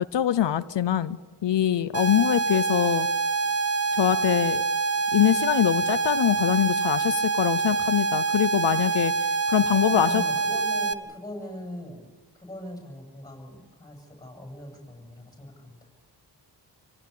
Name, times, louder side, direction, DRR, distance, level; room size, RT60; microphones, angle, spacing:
voice 1, 0.1-3.1 3.9-4.6 5.1-9.1 9.5-10.2, left 11 dB, 90° left, 14 dB, 0.7 m, -23 dB
sound 1, 1.9-10.9, right 4 dB, 35° right, 1.0 m, -26 dB
voice 2, 9.8-12.0 12.4-15.8, left 1 dB, 10° left, 3 dB, 7.6 m, -40 dB
28.0 x 17.5 x 8.5 m, 1.4 s
wide cardioid pair, 145°, 41 cm